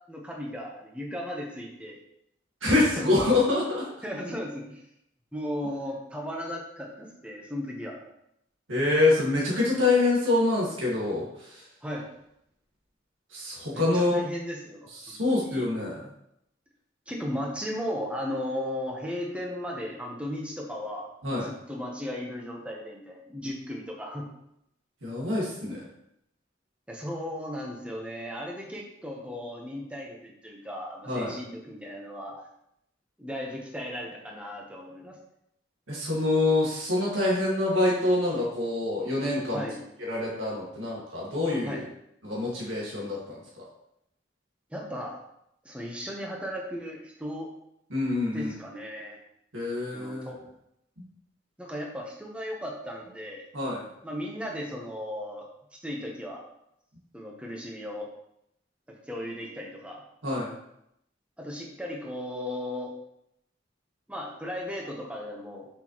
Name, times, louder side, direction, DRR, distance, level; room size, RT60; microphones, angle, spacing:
voice 1, 0.1-2.0 2.9-3.1 4.0-4.9 5.3-8.0 11.8-12.1 13.7-15.7 17.1-21.1 21.4-24.3 26.9-32.5 33.2-35.2 39.5-39.8 41.5-41.8 44.7-45.2 45.6-47.5 48.3-49.2 49.9-50.4 51.6-53.4 54.0-55.5 55.7-56.4 57.1-58.1 58.9-60.0 61.4-62.9 64.1-65.7, equal, 5° right, -1 dB, 1.1 m, -36 dB
voice 2, 2.6-3.9 8.7-11.6 13.3-14.2 15.0-16.1 21.2-21.5 25.0-25.8 31.1-31.3 35.9-39.6 40.1-41.8 42.2-43.6 47.9-48.5 49.5-50.3 53.5-53.8 60.2-60.5, left 2 dB, 90° right, -5 dB, 2.2 m, -26 dB
6.6 x 6.0 x 3.2 m, 0.78 s
head